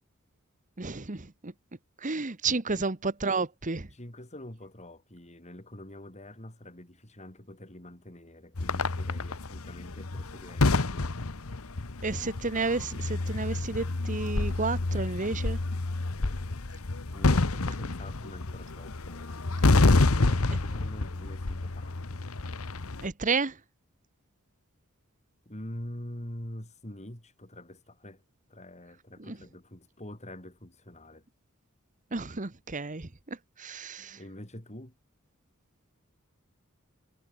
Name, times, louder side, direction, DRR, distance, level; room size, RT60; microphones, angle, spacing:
voice 1, 0.8-1.5 2.0-3.9 12.0-15.6 23.0-23.6 29.2-29.4 32.1-34.2, right 4 dB, 35° right, 1.3 m, -31 dB
voice 2, 3.9-11.3 17.1-22.2 25.4-28.2 28.5-31.2 34.2-34.9, left 1 dB, 30° left, 4.9 m, -45 dB
sound 1, 8.6-23.1, left 2 dB, 80° left, 1.2 m, -28 dB
head